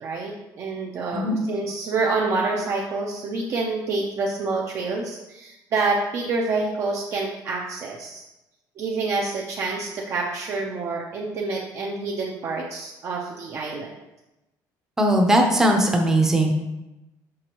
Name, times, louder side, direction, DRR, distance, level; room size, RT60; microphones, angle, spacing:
voice 1, 0.0-8.2 8.8-13.9, right 3 dB, 40° right, -2 dB, 0.7 m, -27 dB
voice 2, 15.0-16.5, right 1 dB, 5° right, 1 dB, 0.8 m, -19 dB
6.2 x 5.9 x 3.0 m, 0.98 s
cardioid pair, 165°, 7 cm